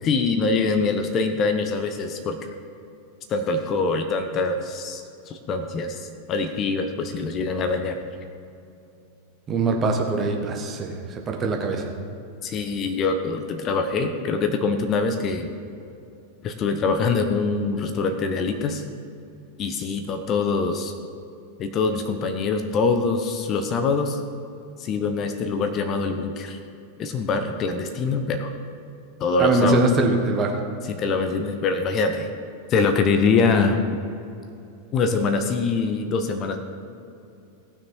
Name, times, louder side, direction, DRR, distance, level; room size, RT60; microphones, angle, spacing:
voice 1, 0.0-2.4 3.3-8.0 12.4-15.5 16.4-18.8 19.6-20.9 21.6-24.2 24.8-26.6 27.0-28.5 29.2-29.8 30.8-32.3 32.7-33.8 34.9-36.6, left 4 dB, 30° left, 6 dB, 0.9 m, -24 dB
voice 2, 9.5-11.9 29.4-30.6, right 2 dB, 25° right, 2 dB, 1.4 m, -22 dB
17.5 x 6.3 x 4.5 m, 2.6 s
figure-of-eight pair, 90°, 0 cm